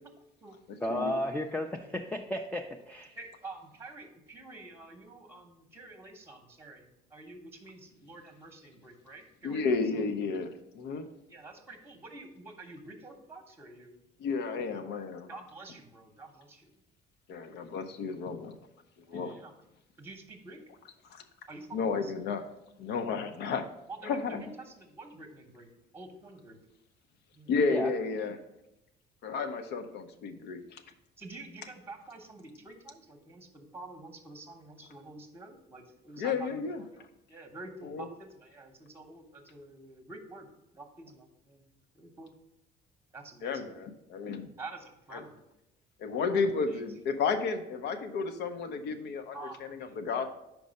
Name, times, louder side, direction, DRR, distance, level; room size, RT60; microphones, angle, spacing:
voice 1, 0.8-3.1 27.7-27.9, left 1 dB, 10° left, 2 dB, 0.4 m, -33 dB
voice 2, 3.1-10.1 11.3-14.0 15.3-16.7 19.0-19.5 20.0-20.6 21.5-22.1 23.9-26.6 27.3-27.5 31.2-40.5 40.7-41.7 41.9-42.3 43.1-43.9 44.6-45.4 46.3-46.4 46.7-46.8 49.3-50.3, right 2 dB, 15° right, 5 dB, 0.9 m, -48 dB
voice 3, 9.4-11.1 14.2-15.3 17.3-18.5 19.1-19.3 21.1-21.2 21.7-22.4 22.8-23.6 24.0-24.4 27.5-28.4 29.2-30.8 36.2-36.8 37.8-38.1 43.4-44.5 45.1-45.2 46.0-46.9 47.2-49.4 49.7-50.3, left 4 dB, 80° left, 8 dB, 0.7 m, -32 dB
5.3 x 4.6 x 5.2 m, 0.87 s
cardioid pair, 110°, 17 cm